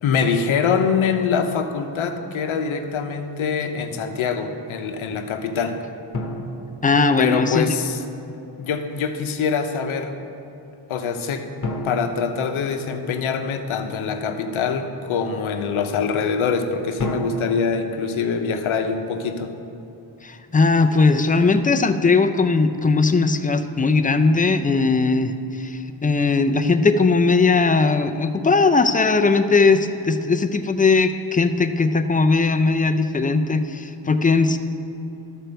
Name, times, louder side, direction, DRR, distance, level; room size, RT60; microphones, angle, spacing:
voice 1, 0.0-5.8 7.2-8.0 8.6-10.2 10.9-11.5 11.8-19.5, left 6 dB, 80° left, 6 dB, 0.8 m, -24 dB
sound 1, 6.1-7.8 11.6-13.5 17.0-19.3, left 1 dB, 40° left, 1.1 m, -33 dB
voice 2, 6.8-7.7 20.2-34.6, left 4 dB, 20° left, 8 dB, 0.4 m, -19 dB
12.0 x 4.5 x 6.8 m, 2.7 s
cardioid pair, 80°, 48 cm